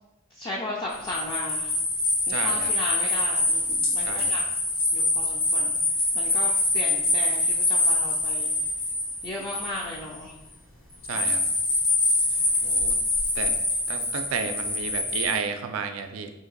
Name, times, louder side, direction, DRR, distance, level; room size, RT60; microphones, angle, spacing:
voice 1, 0.3-1.7 2.3-4.4 4.9-5.8 6.1-8.5 9.2-10.3 11.1-11.5, left 1 dB, 20° left, -4 dB, 0.3 m, -36 dB
sound 1, 0.9-10.2 11.0-15.4, left 2 dB, 85° left, 1.3 m, -25 dB
voice 2, 2.3-2.7 4.0-4.4 11.1-11.4 12.6-12.9 13.4-13.5 13.9-16.3, right 6 dB, 85° right, 7 dB, 0.4 m, -32 dB
2.8 x 2.5 x 3.9 m, 0.98 s
head